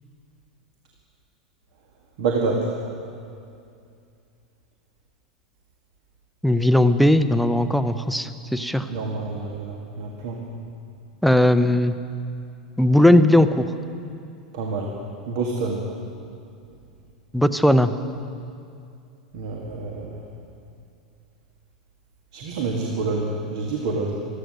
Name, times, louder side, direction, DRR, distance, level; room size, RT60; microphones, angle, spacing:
voice 1, 2.2-2.7 8.9-10.4 14.5-15.0 15.3-15.8 19.3-20.2 22.3-24.1, right 3 dB, 55° right, 0 dB, 1.7 m, -27 dB
voice 2, 6.4-8.9 11.2-11.9 12.8-13.7 17.3-17.9, left 1 dB, ahead, 11 dB, 0.6 m, -18 dB
14.0 x 13.5 x 6.5 m, 2.5 s
figure-of-eight pair, 90°, 4 cm